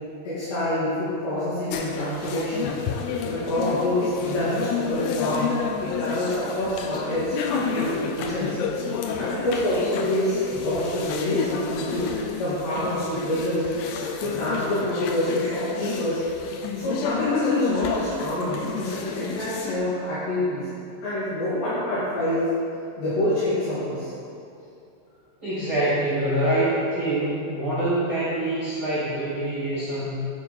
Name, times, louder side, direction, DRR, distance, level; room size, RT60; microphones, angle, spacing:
voice 1, 0.2-2.7 3.2-5.5 5.8-8.6 9.2-12.1 12.4-13.7 14.2-16.2 16.7-20.7 21.0-22.5 23.0-24.1, left 1 dB, 60° left, -14 dB, 4.7 m, -26 dB
sound 1, 1.7-19.8, left 6 dB, 85° left, 2.4 m, -30 dB
voice 2, 25.4-30.1, right 1 dB, 40° right, -10 dB, 2.0 m, -25 dB
12.5 x 6.5 x 4.4 m, 2.6 s
omnidirectional pair, 5.7 m